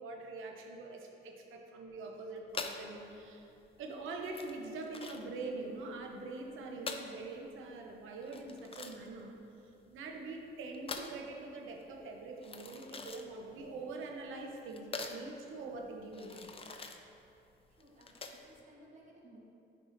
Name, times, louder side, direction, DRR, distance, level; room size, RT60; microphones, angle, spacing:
voice 1, 0.0-3.5 3.8-9.4 9.6-16.5, right 3 dB, 85° right, 1 dB, 0.8 m, -44 dB
sound 1, 2.5-18.6, left 4 dB, 30° left, 0.5 m, -46 dB
voice 2, 17.7-19.4, right 1 dB, 35° right, -4 dB, 1.2 m, -59 dB
10.5 x 4.8 x 2.6 m, 2.8 s
cardioid pair, 90°, 20 cm